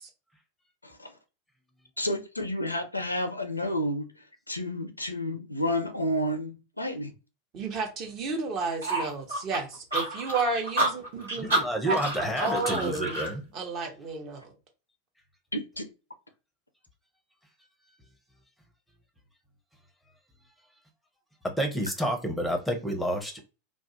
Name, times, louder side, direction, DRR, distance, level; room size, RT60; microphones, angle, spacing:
voice 1, 2.0-4.1 4.5-7.1 15.5-15.9, equal, 85° left, 7 dB, 0.4 m, -30 dB
voice 2, 7.5-13.2 13.5-14.5, right 3 dB, 35° right, 3 dB, 0.8 m, -32 dB
sound 1, 8.8-13.3, right 2 dB, 75° right, 1.3 m, -29 dB
voice 3, 11.4-13.4 21.4-23.4, right 1 dB, 5° left, 4 dB, 0.6 m, -29 dB
2.3 x 2.0 x 2.7 m, 0.30 s
figure-of-eight pair, 90°, 0 cm